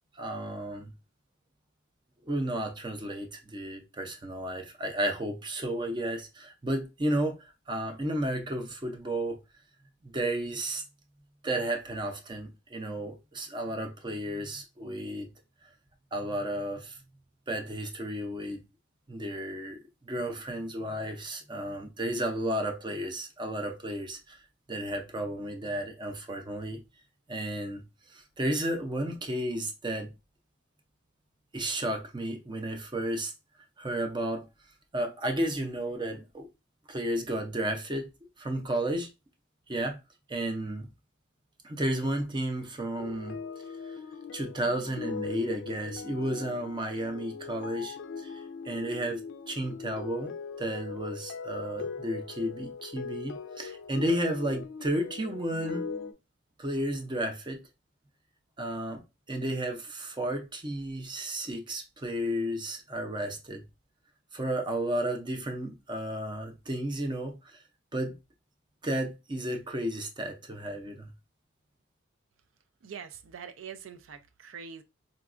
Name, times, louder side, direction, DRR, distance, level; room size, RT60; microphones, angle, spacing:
voice 1, 0.2-0.9 2.2-7.4 7.7-9.4 10.0-10.8 11.4-15.3 16.1-17.0 17.5-18.6 19.1-19.8 20.0-24.4 24.7-26.8 27.3-27.8 28.1-30.1 31.5-33.3 33.8-34.4 34.9-36.5 36.9-38.1 38.4-39.1 39.7-40.0 40.3-40.9 41.6-43.4 44.3-49.2 49.5-50.3 50.6-55.9 56.6-57.6 58.6-59.0 59.3-63.6 64.3-67.6 67.9-68.2 68.8-71.1, right 1 dB, 25° right, 0.5 m, -33 dB
sound 1, 43.0-56.1, left 5 dB, 65° left, 0.4 m, -40 dB
voice 2, 72.8-74.8, right 7 dB, 80° right, 0.4 m, -44 dB
3.9 x 2.2 x 2.4 m
head